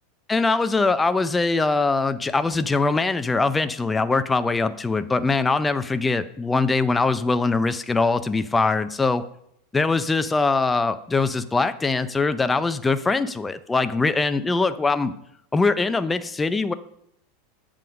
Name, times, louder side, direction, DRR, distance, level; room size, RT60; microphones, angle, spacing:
voice 1, 0.3-9.2 9.7-15.1 15.5-16.7, left 3 dB, 15° left, 11 dB, 0.5 m, -22 dB
7.6 x 3.7 x 6.2 m, 0.73 s
hypercardioid pair, 95°, 0 cm